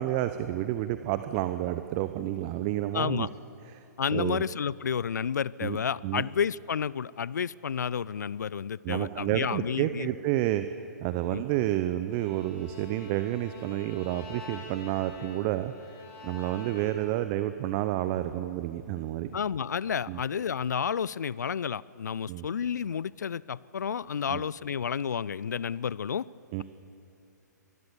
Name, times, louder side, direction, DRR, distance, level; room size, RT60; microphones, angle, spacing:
voice 1, 0.0-3.3 3.7-3.8 4.1-4.4 5.6-5.8 6.0-6.2 8.8-10.7 11.0-15.7 16.2-19.3 20.1-20.2 22.3-22.5 24.3-24.4 26.5-26.6, right 14 dB, 30° right, 10 dB, 0.8 m, -30 dB
voice 2, 2.9-3.3 4.0-10.1 11.3-11.4 19.3-26.3, left 7 dB, 70° left, 22 dB, 0.5 m, -31 dB
Bowed string instrument, 12.1-17.3, left 3 dB, 30° left, 6.2 m, -47 dB
25.0 x 19.5 x 7.1 m, 2.9 s
figure-of-eight pair, 120°, 10 cm